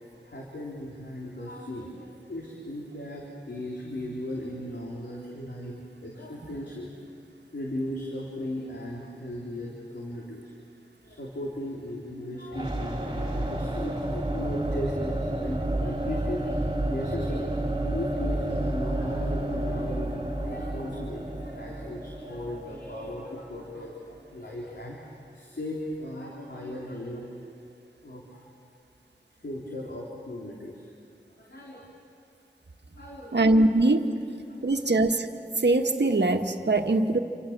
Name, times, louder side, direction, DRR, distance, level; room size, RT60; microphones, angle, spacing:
voice 1, 0.2-6.9 7.5-10.5 11.0-27.4 28.0-28.4 29.4-30.9 31.4-31.9 32.9-33.5 34.5-34.9, left 1 dB, 70° left, -3 dB, 3.7 m, -37 dB
sound 1, 12.5-24.3, right 1 dB, 25° right, 3.4 m, -30 dB
voice 2, 33.3-34.1 34.6-35.3 35.6-37.2, right 2 dB, 75° right, 5 dB, 1.5 m, -22 dB
28.0 x 26.0 x 7.4 m, 2.4 s
wide cardioid pair, 50°, 18 cm